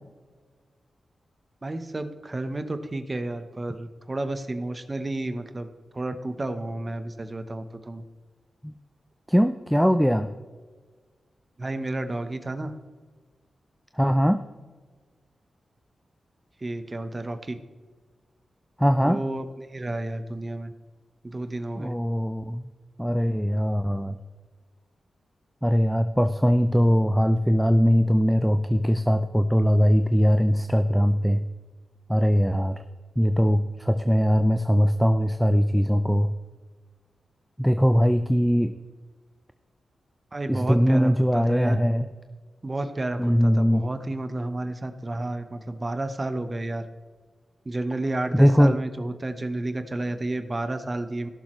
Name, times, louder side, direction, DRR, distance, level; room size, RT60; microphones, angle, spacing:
voice 1, 1.6-5.7 5.9-8.0 11.6-12.7 16.6-17.6 19.0-20.7 21.2-21.9 40.3-41.8 42.6-46.8 47.6-51.3, right 2 dB, 30° right, 9 dB, 1.0 m, -31 dB
voice 2, 9.3-10.3 14.0-14.4 18.8-19.2 21.8-22.6 23.0-24.2 25.6-31.4 32.1-32.8 33.2-36.3 37.6-38.7 40.5-42.0 43.2-43.9 48.3-48.8, equal, ahead, 8 dB, 0.5 m, -21 dB
17.5 x 7.2 x 3.2 m, 1.4 s
cardioid pair, 55°, 0 cm